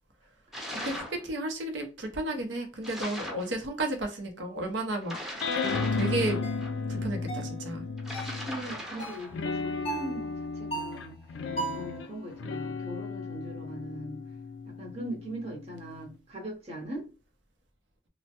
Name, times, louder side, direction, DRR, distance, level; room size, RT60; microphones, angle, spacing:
sound 1, 0.5-1.2 2.8-3.5 5.0-6.7 8.0-9.4, equal, ahead, 0.7 m, -39 dB
voice 1, 0.7-5.1 5.9-6.4 6.9-7.8, right 2 dB, 80° right, 0.6 m, -33 dB
sound 2, 5.4-8.8 9.3-16.1, left 4 dB, 80° left, 0.4 m, -34 dB
sound 3, 5.6-5.8 6.4-6.7 7.3-7.6 8.1-8.4 9.0-9.3 9.8-10.1 10.7-11.0 11.6-11.9, right 4 dB, 35° left, 0.6 m, -36 dB
voice 2, 8.2-11.2 11.5-14.2 14.6-17.0, right 1 dB, 35° right, 0.8 m, -40 dB
3.1 x 2.1 x 2.8 m
head